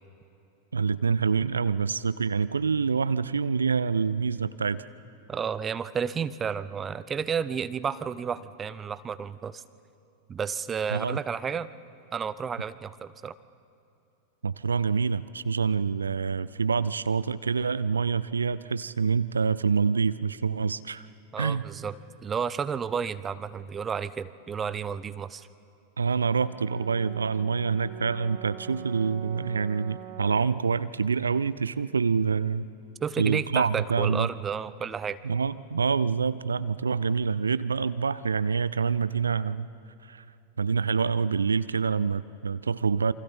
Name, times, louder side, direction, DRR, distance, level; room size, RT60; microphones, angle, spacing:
voice 1, 0.7-4.8 10.9-11.2 14.4-21.1 21.4-21.7 26.0-32.7 33.2-34.3 35.2-39.7 40.0-40.2 40.6-43.1, right 5 dB, 75° right, 16 dB, 0.4 m, -26 dB
voice 2, 5.3-9.6 10.3-11.7 12.1-13.3 21.3-25.5 33.0-35.2, right 6 dB, 20° right, 16 dB, 0.6 m, -32 dB
Brass instrument, 26.2-30.5, right 11 dB, 45° right, 2.3 m, -43 dB
28.5 x 25.0 x 4.3 m, 2.7 s
figure-of-eight pair, 90°, 0 cm